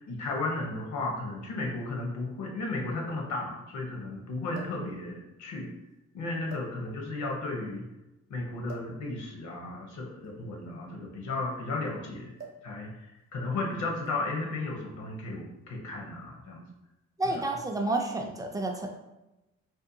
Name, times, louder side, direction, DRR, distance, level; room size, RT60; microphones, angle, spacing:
voice 1, 0.0-5.7 6.1-7.8 8.3-12.3 12.6-13.1 13.3-16.7 17.2-17.4, left 2 dB, 70° left, 0 dB, 0.8 m, -34 dB
sound 1, 0.8-0.9 2.0-2.1 2.3-2.4 4.5-4.9 5.7-5.9 6.5-7.2 8.7-9.0 10.1-11.8 12.4-12.7 13.0-13.3 14.0-14.4 15.4-15.6, right 3 dB, 45° right, 0.8 m, -49 dB
voice 2, 17.2-18.9, right 2 dB, 10° right, 2 dB, 0.4 m, -30 dB
2.7 x 2.1 x 2.6 m, 0.96 s
cardioid pair, 90°, 30 cm